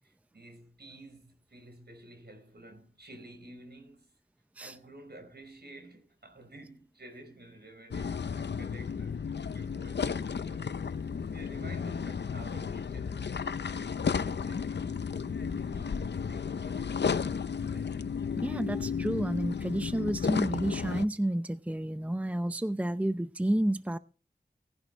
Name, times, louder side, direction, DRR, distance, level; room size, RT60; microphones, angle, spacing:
voice 1, 0.0-4.1 4.6-9.3 9.5-10.8 11.0-14.9 15.5-18.1, right 1 dB, 70° right, 5.0 m, -52 dB
sound 1, 7.9-21.0, left 6 dB, 85° left, 0.6 m, -33 dB
voice 2, 18.4-24.0, right 1 dB, 10° right, 0.6 m, -30 dB
18.5 x 11.0 x 3.2 m
wide cardioid pair, 50°, 18 cm